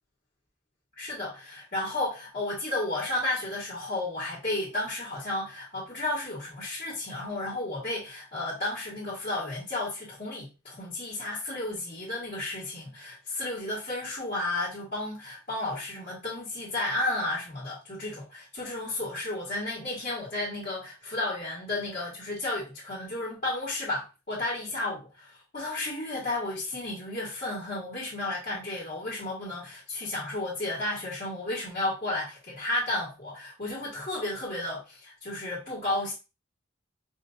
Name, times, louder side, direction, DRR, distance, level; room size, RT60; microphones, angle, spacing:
voice 1, 1.0-36.1, left 2 dB, 40° left, 1.7 m, -33 dB
4.9 x 2.7 x 2.6 m
head